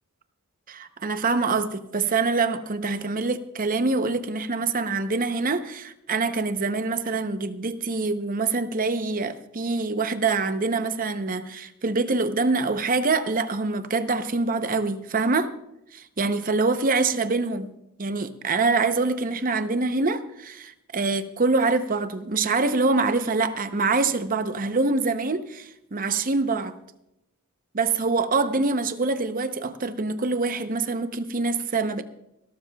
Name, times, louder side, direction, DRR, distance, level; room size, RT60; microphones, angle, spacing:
voice 1, 0.7-15.5 15.9-17.7 18.0-26.7 27.7-32.0, right 3 dB, 40° right, 0.7 m, -25 dB
27.5 x 12.5 x 2.3 m
head